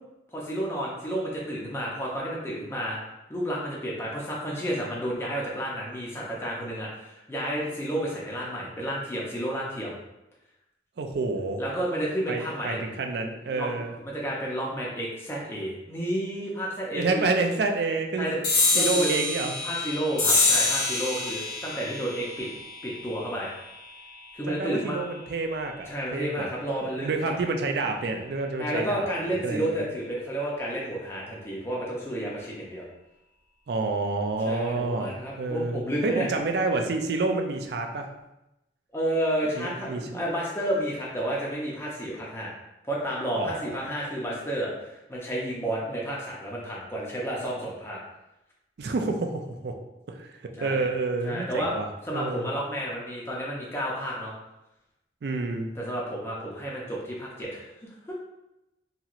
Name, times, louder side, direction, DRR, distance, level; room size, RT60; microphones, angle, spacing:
voice 1, 0.3-3.0 3.3-10.0 11.6-12.8 13.5-13.7 14.0-17.2 18.2-18.4 18.7-19.1 19.6-22.5 22.8-23.5 24.3-25.0 25.9-27.3 28.6-32.9 34.4-36.3 38.9-42.5 42.9-48.0 50.6-50.9 51.2-51.7 52.0-54.3 55.8-58.1, right 1 dB, 15° left, -5 dB, 0.5 m, -31 dB
voice 2, 11.0-11.6 12.3-13.9 17.0-18.3 18.8-19.5 24.5-26.5 26.8-29.8 33.7-38.1 39.5-40.2 43.4-43.8 48.8-49.8 50.1-52.5 55.2-55.7, right 3 dB, 65° right, 4 dB, 0.4 m, -29 dB
sound 1, 18.4-25.3, left 3 dB, 75° left, 1.0 m, -27 dB
2.9 x 2.8 x 2.4 m, 0.93 s
head